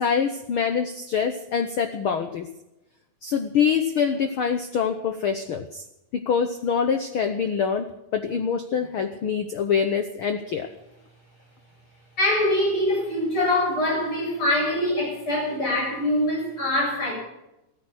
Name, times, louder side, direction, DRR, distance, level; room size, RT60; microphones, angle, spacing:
voice 1, 0.0-2.5 3.2-5.8 6.1-10.7, left 6 dB, 90° left, 8 dB, 1.1 m, -25 dB
voice 2, 12.2-17.1, left 1 dB, 40° left, -1 dB, 8.6 m, -24 dB
15.5 x 14.5 x 6.3 m, 0.90 s
omnidirectional pair, 3.7 m